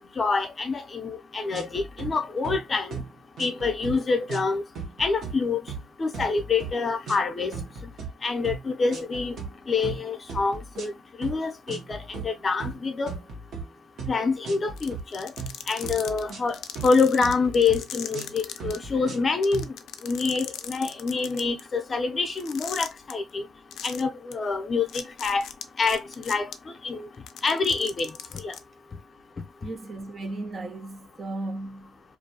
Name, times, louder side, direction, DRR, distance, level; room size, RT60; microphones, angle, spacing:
voice 1, 0.2-2.9 3.4-4.6 5.0-5.6 6.0-7.5 8.2-9.4 9.7-10.9 11.2-12.0 12.2-13.1 14.1-15.3 15.7-19.7 20.0-23.4 23.8-25.4 25.8-26.5 26.8-27.1 27.4-28.1 28.4-28.5, left 4 dB, 35° left, 0.6 m, -26 dB
Level music brackground, 1.5-2.1 2.4-2.6 2.9-3.1 3.4-4.0 4.3-4.5 4.8-5.4 5.7-5.9 6.1-6.8 7.1-7.2 7.5-8.1 8.4-8.6 8.9-9.5 9.8-10.0 10.3-10.9 11.2-11.4 11.7-12.3 12.6-13.7 14.0-14.2 14.4-15.0 15.4-15.5 15.8-17.0 17.2-17.8 18.1-18.3 18.6-19.3 19.5-19.7, right 5 dB, 70° right, 1.0 m, -36 dB
sound 1, 14.8-18.8 19.1-19.2 19.4-21.6 22.4-23.1 23.7-24.0 24.3-24.4 24.9-26.5 27.1-28.6, left 10 dB, 80° left, 0.3 m, -37 dB
voice 2, 29.6-32.0, right 2 dB, 40° right, 0.4 m, -35 dB
2.5 x 2.2 x 2.7 m
cardioid pair, 90°, 0 cm